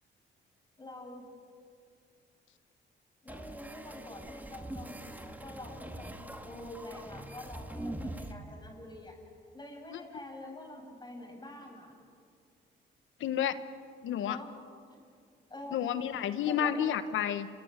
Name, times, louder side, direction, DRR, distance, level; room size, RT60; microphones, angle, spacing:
voice 1, 0.8-1.3 3.2-9.2 9.5-12.0 14.2-14.6 14.9-15.2 15.5-15.8 16.5-17.0, left 1 dB, 20° left, 1 dB, 8.0 m, -46 dB
sound 1, 3.3-8.3, right 1 dB, 10° right, 2.3 m, -43 dB
voice 2, 13.2-13.5 14.0-14.4 15.7-17.5, left 9 dB, 75° left, 11 dB, 1.2 m, -30 dB
28.5 x 25.5 x 7.4 m, 2.3 s
cardioid pair, 90°, 20 cm